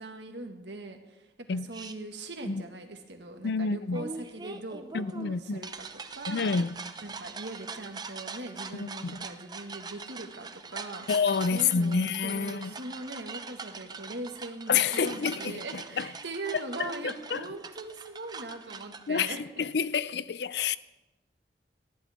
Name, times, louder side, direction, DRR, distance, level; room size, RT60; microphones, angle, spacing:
voice 1, 0.0-6.5 7.0-11.1 11.5-19.7, right 2 dB, 85° right, 1.9 m, -41 dB
sound 1, 1.7-1.9 3.9-19.4, right 4 dB, 25° right, 0.7 m, -43 dB
voice 2, 3.4-4.0 4.9-5.6 6.3-6.8 8.7-9.3 11.1-12.7 14.7-16.1 16.8-17.4 19.1-20.8, left 5 dB, 70° left, 0.5 m, -29 dB
19.5 x 14.5 x 3.7 m
head